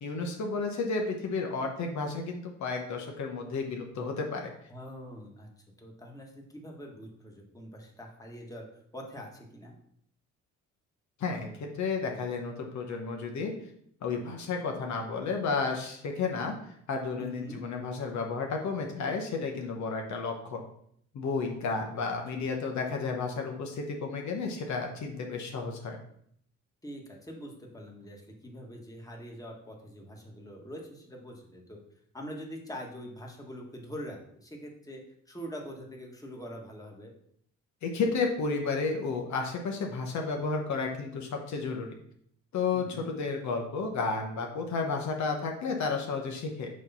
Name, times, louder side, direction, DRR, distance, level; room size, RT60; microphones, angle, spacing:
voice 1, 0.0-4.5 11.2-13.5 14.0-16.6 16.9-20.6 21.1-26.0 37.8-41.9 42.5-46.7, left 4 dB, 70° left, 2 dB, 1.1 m, -32 dB
voice 2, 4.7-5.5 5.8-8.7 8.9-9.8 17.2-17.6 21.5-22.1 26.8-31.8 32.1-37.1 42.7-43.1, equal, 10° left, 0 dB, 1.5 m, -44 dB
6.5 x 3.1 x 5.5 m, 0.68 s
cardioid pair, 90°, 30 cm